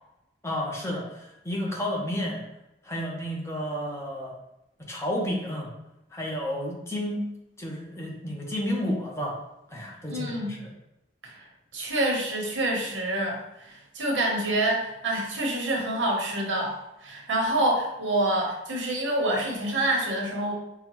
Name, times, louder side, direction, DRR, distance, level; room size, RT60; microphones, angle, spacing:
voice 1, 0.4-2.4 2.8-4.3 4.9-5.7 6.1-7.2 7.6-9.4 9.7-10.7, equal, 15° left, -2 dB, 0.7 m, -31 dB
voice 2, 10.1-10.5 11.3-11.5 11.7-20.5, right 1 dB, 80° right, -1 dB, 1.1 m, -27 dB
5.6 x 2.2 x 3.0 m, 0.88 s
head